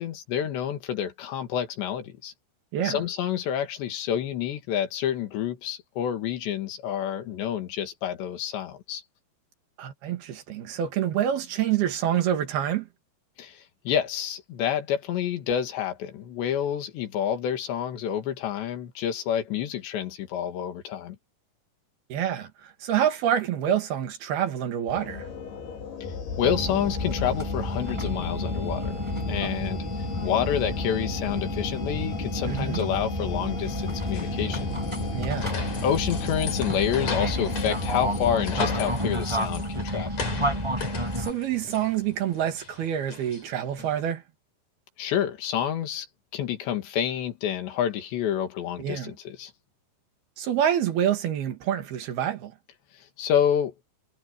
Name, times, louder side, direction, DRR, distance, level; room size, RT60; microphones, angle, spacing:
voice 1, 0.0-2.3 2.8-9.0 13.4-21.2 26.4-29.9 30.2-34.7 35.8-40.1 45.0-46.1 46.3-49.5 52.9-53.7, left 9 dB, 90° left, 4.3 m, -28 dB
voice 2, 9.8-12.9 22.1-25.3 29.4-29.6 32.5-32.8 35.1-35.5 41.2-44.2 48.8-49.1 50.4-52.5, right 10 dB, 65° right, 3.9 m, -27 dB
sound 1, 24.9-39.0, left 5 dB, 65° left, 4.8 m, -34 dB
sound 2, 26.4-41.3, right 1 dB, 5° right, 6.1 m, -31 dB
sound 3, 33.6-44.1, left 4 dB, 40° left, 4.9 m, -38 dB
omnidirectional pair, 4.9 m